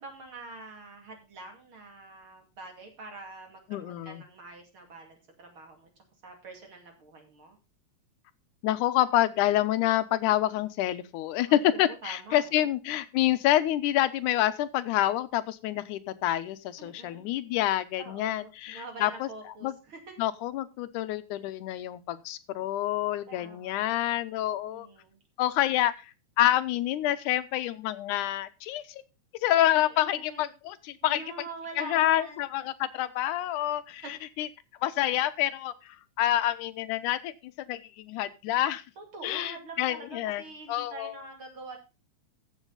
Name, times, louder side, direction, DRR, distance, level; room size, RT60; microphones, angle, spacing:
voice 1, 0.0-5.9 6.2-7.6 11.5-12.7 16.8-17.2 18.0-20.1 23.3-24.0 24.6-25.2 29.8-30.5 31.0-32.5 34.0-34.1 39.0-41.8, right 3 dB, 45° right, 3 dB, 3.0 m, -45 dB
voice 2, 3.7-4.2 8.6-19.3 19.6-19.7 20.2-24.9 25.4-29.0 29.4-31.2 31.8-34.5 34.8-38.8 39.2-40.4 40.7-41.1, left 13 dB, 85° left, 14 dB, 2.2 m, -27 dB
14.5 x 7.2 x 3.9 m, 0.29 s
omnidirectional pair, 3.5 m